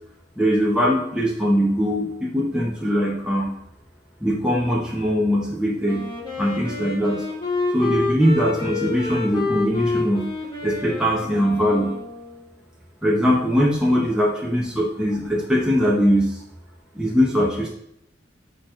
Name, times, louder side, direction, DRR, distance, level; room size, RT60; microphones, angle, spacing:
voice 1, 0.4-3.5 4.2-6.0 6.4-7.2 7.7-10.3 10.6-11.9 13.0-16.4 16.9-17.7, equal, 5° right, -4 dB, 0.8 m, -21 dB
Wind instrument woodwind instrument, 5.8-12.5, left 3 dB, 25° left, 1.4 m, -28 dB
6.8 x 3.0 x 4.9 m, 0.79 s
head